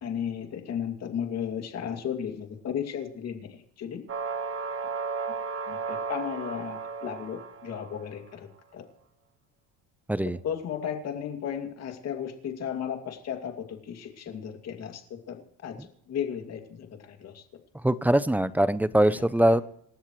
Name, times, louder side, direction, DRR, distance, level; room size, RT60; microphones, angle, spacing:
voice 1, 0.0-4.0 5.7-8.8 10.4-15.8 16.1-17.4 19.1-19.6, left 8 dB, 45° left, 5 dB, 2.5 m, -35 dB
sound 1, 4.1-8.1, right 5 dB, 35° right, 1.9 m, -34 dB
voice 2, 17.8-19.6, right 1 dB, 5° right, 15 dB, 0.5 m, -22 dB
27.0 x 13.5 x 3.2 m, 0.72 s
cardioid pair, 135°, 37 cm